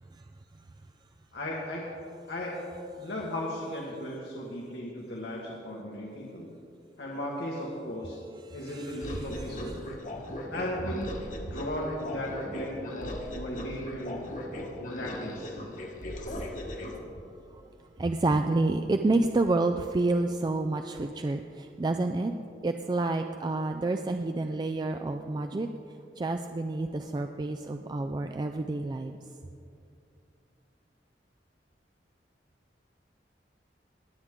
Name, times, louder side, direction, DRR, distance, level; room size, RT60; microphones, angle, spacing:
voice 1, 1.3-1.8 2.3-2.5 3.0-6.5 7.0-8.2 8.5-9.8 10.5-11.1 11.5-14.2 14.8-15.6, left 1 dB, 80° left, -3 dB, 1.5 m, -36 dB
voice 2, 8.4-9.8 16.9-17.1 17.3-17.6 18.0-22.3 22.6-25.7 26.2-29.2, right 2 dB, 25° right, 6 dB, 0.3 m, -29 dB
sound 1, 9.0-17.0, left 1 dB, 45° left, 1.3 m, -38 dB
20.0 x 8.1 x 3.7 m, 2.6 s
head